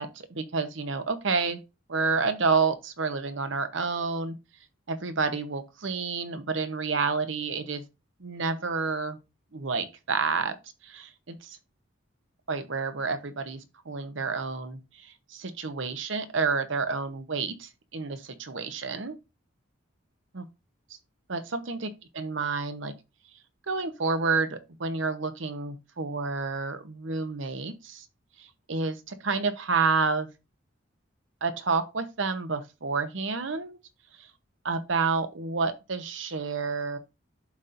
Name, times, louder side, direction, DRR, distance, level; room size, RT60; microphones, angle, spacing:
voice 1, 0.0-1.6 1.9-4.4 4.9-7.8 8.2-9.2 9.5-10.5 10.8-11.6 12.5-19.1 20.3-20.4 21.3-21.8 22.2-22.9 23.7-28.1 28.4-30.3 31.4-33.8 34.2-34.3 34.6-37.0, right 4 dB, 70° right, 0.9 m, -29 dB
11.5 x 4.2 x 2.6 m
head